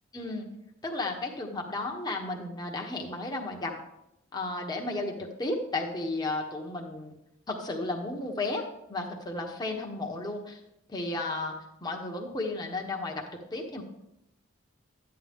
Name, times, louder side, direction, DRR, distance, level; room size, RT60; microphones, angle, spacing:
voice 1, 0.1-0.5 0.8-3.7 4.3-7.1 7.5-10.6 10.9-11.5 11.8-13.2 13.5-13.8, left 2 dB, 20° left, 0 dB, 1.2 m, -33 dB
12.0 x 9.1 x 3.6 m, 0.84 s
head